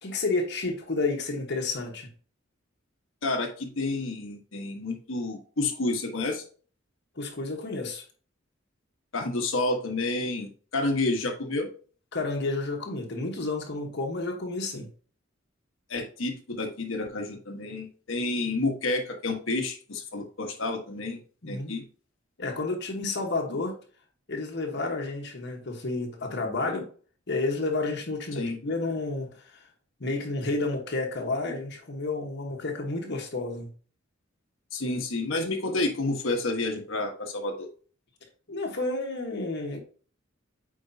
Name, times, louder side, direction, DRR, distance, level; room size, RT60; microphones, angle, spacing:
voice 1, 0.0-2.1 7.1-8.0 12.1-14.9 21.4-21.7 22.4-23.7 24.3-26.9 27.3-29.7 30.0-33.7 38.5-39.8, left 3 dB, 60° left, 2 dB, 1.3 m, -31 dB
voice 2, 3.2-6.4 9.1-11.7 15.9-21.2 21.5-21.8 28.3-28.6 34.7-37.7, left 2 dB, 75° left, 3 dB, 1.3 m, -30 dB
8.8 x 4.5 x 2.7 m, 0.41 s
head